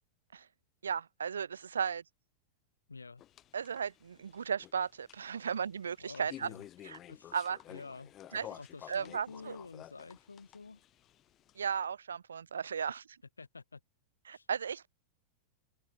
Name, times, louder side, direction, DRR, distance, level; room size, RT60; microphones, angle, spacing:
voice 1, 0.8-2.0 3.5-6.5 6.8-7.0 7.3-7.6 8.3-8.5 8.9-9.6 11.6-13.0 14.3-14.9, right 7 dB, 70° right, 0.4 m, -35 dB
voice 2, 2.9-3.2 6.0-6.7 7.1-7.3 7.7-8.1 8.6-10.8 12.9-13.0 13.4-13.8 14.3-14.5, left 4 dB, 80° left, 2.4 m, -49 dB
sound 1, 3.2-11.8, left 12 dB, 30° left, 1.9 m, -52 dB
open air
figure-of-eight pair, 90°, 0 cm